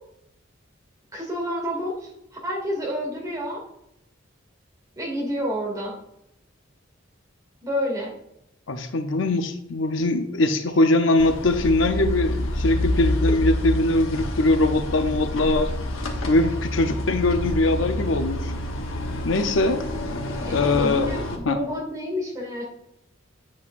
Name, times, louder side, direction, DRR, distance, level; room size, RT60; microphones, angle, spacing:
voice 1, 1.1-2.1 2.4-3.6 5.0-5.9 7.6-8.1 20.5-20.6 20.8-22.6, equal, 15° right, -2 dB, 2.4 m, -29 dB
voice 2, 8.7-15.7 16.3-18.5 19.2-19.8 20.5-21.2 21.4-21.6, left 2 dB, 70° left, 8 dB, 0.6 m, -22 dB
sound 1, 11.2-21.4, left 1 dB, 90° left, 1.1 m, -28 dB
8.5 x 7.5 x 2.6 m, 0.79 s
head